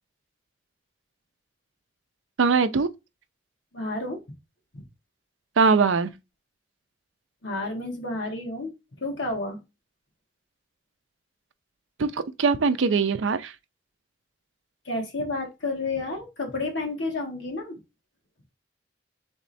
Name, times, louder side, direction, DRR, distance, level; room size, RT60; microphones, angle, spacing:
voice 1, 2.4-2.9 5.6-6.1 12.0-13.5, right 5 dB, 90° right, 0.5 m, -21 dB
voice 2, 3.7-4.2 4.7-4.8 7.4-8.7 9.0-9.6 14.9-17.7, left 2 dB, 75° left, 1.4 m, -30 dB
3.5 x 3.2 x 4.0 m
head